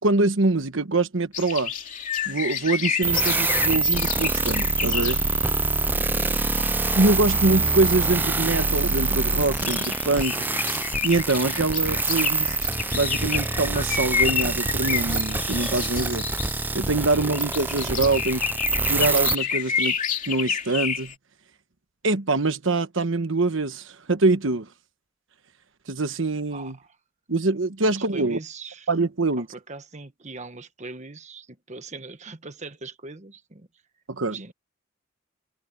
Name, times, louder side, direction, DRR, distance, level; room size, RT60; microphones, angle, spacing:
voice 1, 0.0-1.7 2.3-5.2 6.6-6.7 7.0-10.4 11.0-16.2 16.7-18.4 18.9-19.9 20.3-21.1 22.0-24.7 25.9-26.8 27.3-28.4 28.9-29.5 34.1-34.4, right 2 dB, 70° right, 1.2 m, -24 dB
sound 1, 1.3-5.5 5.8-8.5 8.7-21.1, left 7 dB, 40° left, 2.7 m, -30 dB
sound 2, 3.0-19.3, right 3 dB, 10° right, 0.4 m, -25 dB
voice 2, 5.9-6.3 26.5-27.0 27.8-28.9 29.4-33.7 34.2-34.5, right 3 dB, 35° right, 1.4 m, -41 dB
head